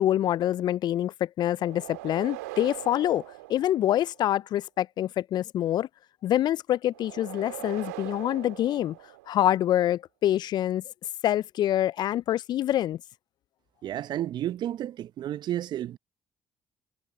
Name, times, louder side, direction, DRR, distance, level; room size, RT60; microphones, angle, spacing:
voice 1, 0.0-3.2 3.5-5.9 6.2-9.0 9.3-10.8 11.2-13.0, left 12 dB, 55° left, 0.5 m, -26 dB
sound 1, 1.6-4.3 6.9-9.6, right 21 dB, 80° right, 2.2 m, -41 dB
voice 2, 13.8-16.0, right 12 dB, 55° right, 1.1 m, -31 dB
hypercardioid pair, 50°, 9 cm